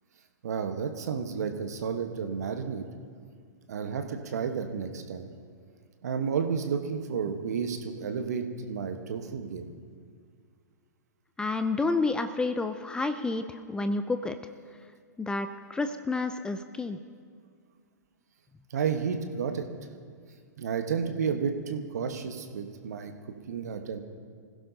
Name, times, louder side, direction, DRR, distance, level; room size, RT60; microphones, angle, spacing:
voice 1, 0.4-2.8 3.7-5.3 6.0-9.7 18.7-19.7 20.6-23.1 23.5-24.0, right 6 dB, 60° right, 6 dB, 1.2 m, -31 dB
voice 2, 11.4-14.4 15.2-17.0, left 3 dB, 10° left, 9 dB, 0.5 m, -30 dB
26.0 x 16.0 x 2.8 m, 2.1 s
figure-of-eight pair, 105°, 10 cm